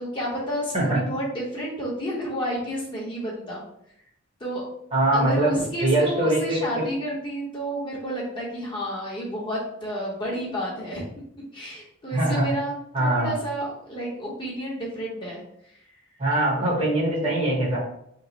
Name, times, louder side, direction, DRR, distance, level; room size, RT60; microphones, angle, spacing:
voice 1, 0.0-3.6 4.4-4.6 5.1-11.0 11.5-15.8 16.6-16.7, equal, 25° left, -5 dB, 0.8 m, -31 dB
voice 2, 4.9-5.6 5.8-6.8 12.1-12.5 12.9-13.3 16.2-17.8, right 1 dB, 30° right, -5 dB, 1.0 m, -22 dB
3.0 x 2.1 x 3.9 m, 0.72 s
head